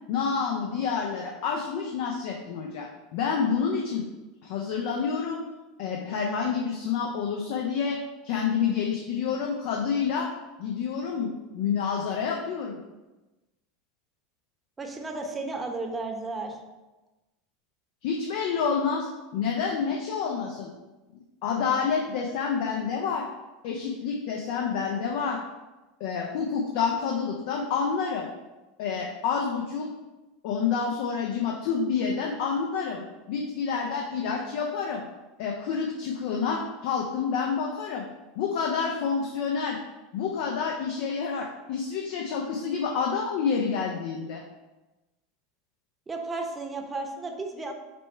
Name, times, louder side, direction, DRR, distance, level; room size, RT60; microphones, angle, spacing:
voice 1, 0.1-4.0 4.4-5.4 5.8-8.0 8.2-10.3 10.6-12.8 18.0-20.7 21.4-23.3 23.6-25.4 26.0-28.3 28.8-29.9 30.4-35.0 35.4-38.1 38.4-39.8 40.1-44.4, left 6 dB, 65° left, 0 dB, 0.5 m, -28 dB
voice 2, 14.8-16.6 46.1-47.7, right 3 dB, 20° right, 3 dB, 0.7 m, -33 dB
5.1 x 2.3 x 4.3 m, 1.1 s
hypercardioid pair, 90°, 0 cm